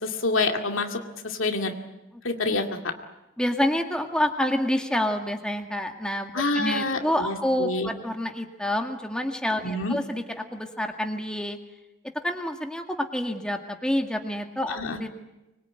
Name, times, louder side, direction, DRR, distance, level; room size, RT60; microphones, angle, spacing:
voice 1, 0.0-1.7 2.2-2.9 6.3-7.9 9.6-10.0 14.7-15.0, left 3 dB, 85° left, 4 dB, 2.3 m, -27 dB
voice 2, 3.4-11.6 12.1-15.1, left 1 dB, 5° left, 4 dB, 1.9 m, -28 dB
24.5 x 22.0 x 9.1 m, 0.97 s
head